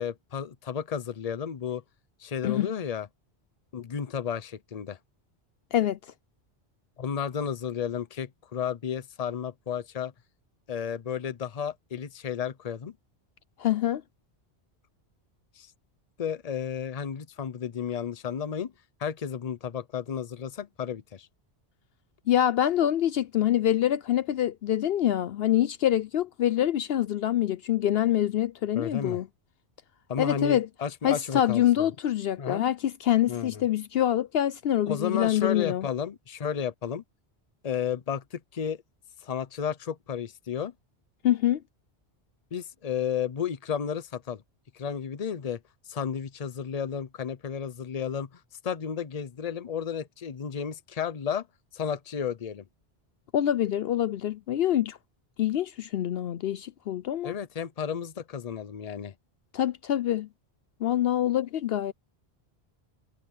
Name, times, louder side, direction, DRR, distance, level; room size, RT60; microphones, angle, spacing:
voice 1, 0.0-1.8 2.2-3.1 3.7-5.0 7.0-10.1 10.7-13.0 15.6-15.7 16.2-18.7 19.0-21.3 28.7-29.2 30.1-31.9 32.4-32.7 33.3-33.6 34.8-37.0 37.6-38.8 39.2-40.7 42.5-44.4 44.7-45.6 45.9-51.5 51.7-52.6 57.2-59.1, left 7 dB, 40° left, 0.8 m, -32 dB
voice 2, 13.6-14.0 22.3-29.3 30.2-30.7 31.0-35.9 41.2-41.6 53.3-55.0 55.4-57.3 59.5-60.3 60.8-61.9, left 11 dB, 70° left, 0.8 m, -25 dB
omnidirectional pair, 1.1 m